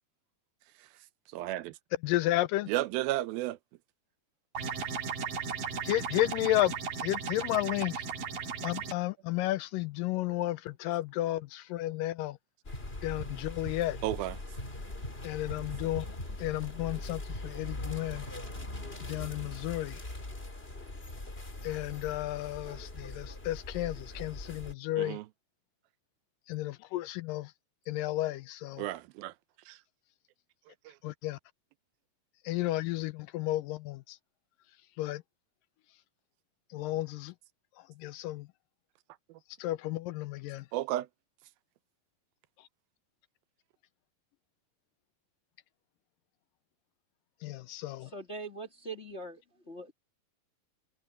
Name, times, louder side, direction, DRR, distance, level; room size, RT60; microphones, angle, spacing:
voice 1, 1.3-1.8 2.7-3.6 14.0-14.4 25.0-25.3 28.8-29.3 29.7-29.8 30.9-31.0 39.3-39.4 40.7-41.1, right 15 dB, 85° right, 2.5 m, -33 dB
voice 2, 2.0-2.7 5.8-8.0 8.6-12.4 13.0-14.0 15.2-16.1 16.4-18.3 19.0-20.0 21.6-25.2 26.5-27.5 27.9-28.8 31.0-31.4 32.4-34.2 35.0-35.2 36.7-37.3 37.8-38.5 39.6-40.7 47.4-48.1, left 16 dB, 80° left, 2.1 m, -32 dB
sound 1, 4.6-8.9, right 6 dB, 65° right, 4.4 m, -36 dB
sound 2, 12.6-24.7, left 2 dB, 15° left, 2.9 m, -41 dB
voice 3, 48.0-49.9, right 2 dB, 35° left, 1.0 m, -42 dB
omnidirectional pair, 4.2 m